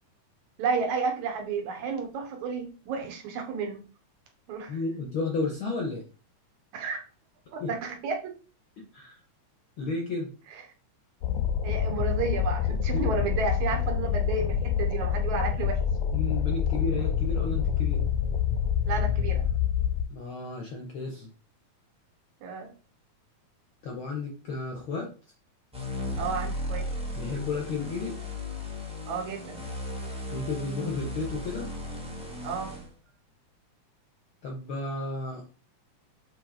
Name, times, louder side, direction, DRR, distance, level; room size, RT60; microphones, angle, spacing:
voice 1, 0.6-3.8 4.5-4.8 6.7-7.0 7.5-8.3 11.6-15.8 18.9-19.5 22.4-22.7 26.2-26.9 29.1-29.6 32.4-32.8, right 5 dB, 75° right, 3 dB, 2.4 m, -31 dB
voice 2, 4.7-6.1 7.6-7.7 8.8-9.2 9.8-10.3 12.9-13.1 16.1-18.0 20.1-21.3 23.8-25.1 27.1-28.3 30.3-31.7 34.4-35.4, left 3 dB, 65° left, 1 dB, 1.3 m, -33 dB
sound 1, 11.2-20.0, left 8 dB, 85° left, 2.3 m, -27 dB
sound 2, 25.7-32.9, left 1 dB, 5° right, 0.5 m, -36 dB
7.5 x 3.3 x 3.8 m, 0.37 s
omnidirectional pair, 3.5 m